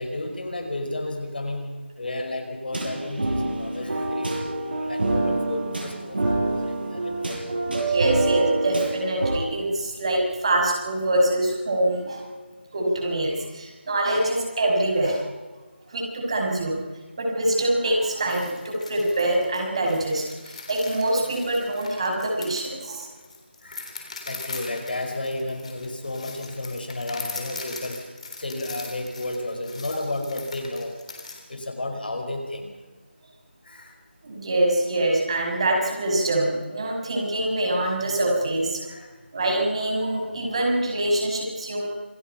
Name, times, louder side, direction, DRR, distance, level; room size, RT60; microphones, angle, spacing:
voice 1, 0.0-1.7 2.0-4.3 4.7-7.4 21.6-21.7 23.6-23.9 24.3-28.0 28.4-30.9 31.5-32.7 33.7-33.9 38.8-39.1, left 2 dB, 55° left, 5 dB, 4.8 m, -32 dB
sound 1, 2.7-9.4, right 2 dB, 55° right, 7.1 m, -26 dB
voice 2, 7.7-12.2 12.7-15.4 15.9-16.8 17.2-23.1 34.2-38.8 39.3-41.9, right 1 dB, 30° right, 0 dB, 5.6 m, -24 dB
sound 2, 18.3-31.4, left 3 dB, 35° left, 3.7 m, -40 dB
27.5 x 17.5 x 5.7 m, 1.3 s
figure-of-eight pair, 170°, 6 cm